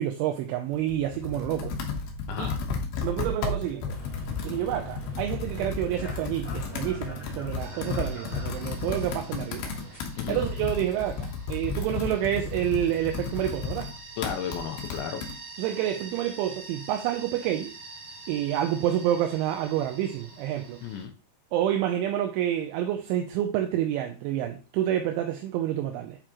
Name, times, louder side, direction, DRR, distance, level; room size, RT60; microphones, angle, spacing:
voice 1, 0.0-1.7 2.4-2.5 3.0-4.0 4.4-9.7 10.3-13.9 15.6-17.7 18.3-20.8 21.5-26.2, right 11 dB, 80° right, 2.9 m, -28 dB
Computer keyboard, 0.7-15.3, left 4 dB, 70° left, 2.5 m, -33 dB
voice 2, 2.3-2.6 10.2-10.4 14.2-15.2 20.8-21.1, left 8 dB, 85° left, 2.8 m, -34 dB
sound 1, 3.9-10.0, right 2 dB, 10° left, 2.2 m, -43 dB
sound 2, 7.6-21.0, right 3 dB, 50° right, 2.8 m, -46 dB
9.1 x 4.9 x 3.0 m
omnidirectional pair, 5.8 m